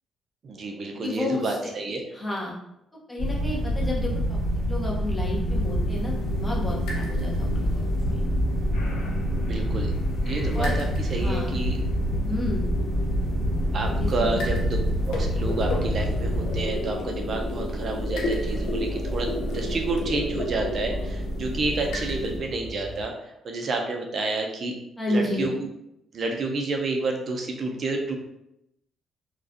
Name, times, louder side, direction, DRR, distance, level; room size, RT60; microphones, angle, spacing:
voice 1, 0.4-2.0 9.5-9.9 10.2-11.8 13.7-14.8 15.1-23.1 23.4-24.7 25.1-25.7 26.1-28.2, right 3 dB, 50° right, 2 dB, 0.4 m, -29 dB
voice 2, 1.0-1.7 2.1-2.5 3.1-4.4 4.7-7.6 8.0-8.2 10.5-10.8 11.2-11.5 12.2-12.7 14.0-14.6 25.0-25.5, left 2 dB, 20° left, -3 dB, 0.7 m, -31 dB
sound 1, 3.2-16.7, equal, 50° left, 1.4 m, -27 dB
sound 2, 5.5-22.4, equal, 85° left, 0.5 m, -31 dB
sound 3, 7.1-23.0, left 1 dB, 65° left, 0.8 m, -41 dB
2.4 x 2.2 x 2.4 m, 0.84 s
cardioid pair, 90°, 0 cm